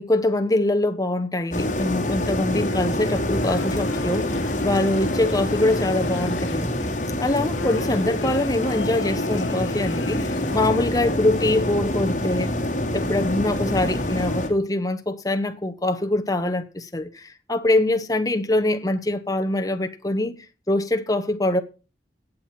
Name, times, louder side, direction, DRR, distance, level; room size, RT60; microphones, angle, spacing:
voice 1, 0.0-6.7 7.2-12.5 12.9-20.4 20.7-21.6, left 1 dB, 20° left, 1.0 m, -23 dB
sound 1, 1.5-14.5, left 1 dB, 40° left, 2.6 m, -26 dB
sound 2, 3.4-10.8, left 4 dB, 85° left, 1.2 m, -38 dB
17.5 x 7.6 x 4.4 m
head